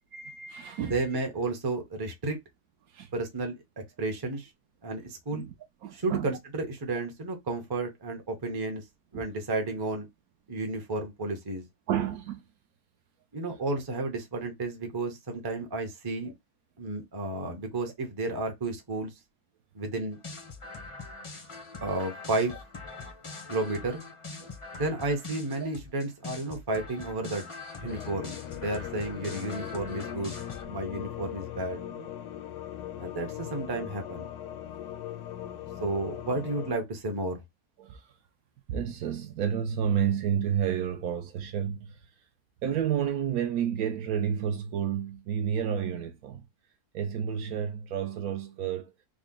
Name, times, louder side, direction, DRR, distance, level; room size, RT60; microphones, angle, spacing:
voice 1, 0.1-1.1 2.9-3.1 5.3-5.5 5.8-6.4 9.1-9.3 11.9-12.4 22.9-23.1 24.4-24.5 27.8-28.0 37.8-38.1 38.7-42.1 42.6-46.4 46.9-48.9, right 8 dB, 70° right, 1.0 m, -30 dB
voice 2, 0.8-2.4 3.1-3.6 4.0-4.5 4.8-5.5 5.9-8.8 9.1-10.1 10.5-11.6 13.3-16.3 16.8-19.1 19.7-20.2 21.8-22.5 23.5-24.0 24.7-27.5 27.8-32.1 33.0-34.3 35.8-37.4, right 2 dB, 25° right, 0.5 m, -32 dB
sound 1, 20.1-30.6, left 3 dB, 35° left, 0.5 m, -43 dB
sound 2, 27.9-36.7, left 11 dB, 75° left, 1.1 m, -39 dB
3.7 x 2.1 x 3.6 m
omnidirectional pair, 1.7 m